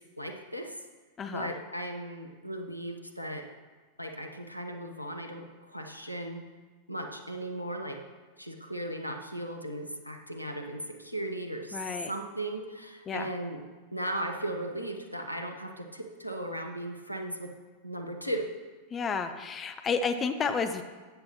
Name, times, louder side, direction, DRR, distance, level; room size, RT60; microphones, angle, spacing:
voice 1, 0.2-0.7 1.3-3.5 4.0-6.4 6.9-8.0 8.4-11.8 12.1-13.6 13.9-17.5 17.8-18.5, right 1 dB, 90° left, 5 dB, 0.9 m, -37 dB
voice 2, 1.2-1.5 11.7-12.1 13.1-13.3 18.9-20.8, left 5 dB, 25° left, 8 dB, 0.6 m, -31 dB
13.0 x 8.6 x 3.0 m, 1.4 s
figure-of-eight pair, 90°, 0 cm